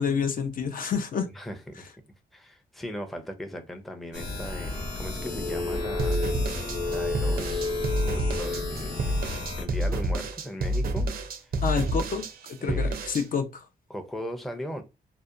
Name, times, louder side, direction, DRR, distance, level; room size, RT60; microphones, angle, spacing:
voice 1, 0.0-1.3 11.6-13.7, left 6 dB, 55° left, 0.4 m, -28 dB
voice 2, 1.3-1.9 2.3-6.6 6.9-11.1 11.4-11.5 12.6-13.0 13.9-14.8, equal, ahead, 0.4 m, -38 dB
sound 1, 4.1-9.6, left 2 dB, 85° left, 1.0 m, -34 dB
sound 2, 5.2-9.4, left 3 dB, 30° left, 0.9 m, -33 dB
sound 3, 6.0-13.2, right 1 dB, 60° right, 0.4 m, -29 dB
2.7 x 2.1 x 2.3 m
cardioid pair, 100°, 17 cm